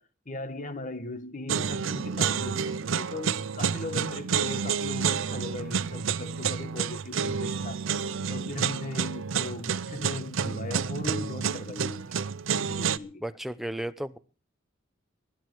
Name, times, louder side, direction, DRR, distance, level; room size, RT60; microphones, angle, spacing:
voice 1, 0.0-7.8 8.3-12.2 12.5-13.2, left 2 dB, 40° left, 1.4 m, -38 dB
sound 1, 1.5-13.0, right 6 dB, 80° right, 0.6 m, -29 dB
voice 2, 13.2-14.2, right 1 dB, ahead, 0.8 m, -34 dB
20.0 x 12.0 x 4.7 m
head